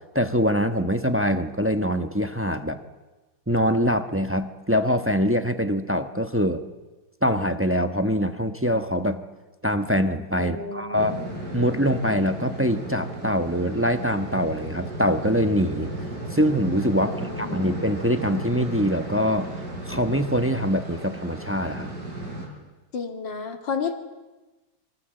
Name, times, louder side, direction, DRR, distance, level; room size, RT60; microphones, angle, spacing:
voice 1, 0.1-2.8 3.5-6.6 7.2-9.2 9.6-11.2 11.5-15.9 16.3-19.5 19.9-21.9, equal, 10° right, 8 dB, 0.7 m, -24 dB
voice 2, 10.4-11.4 17.0-17.7 22.9-23.9, left 5 dB, 65° left, 5 dB, 2.8 m, -32 dB
sound 1, 10.9-22.5, right 1 dB, 55° right, 6.7 m, -34 dB
27.5 x 24.0 x 7.9 m, 1.2 s
omnidirectional pair, 2.2 m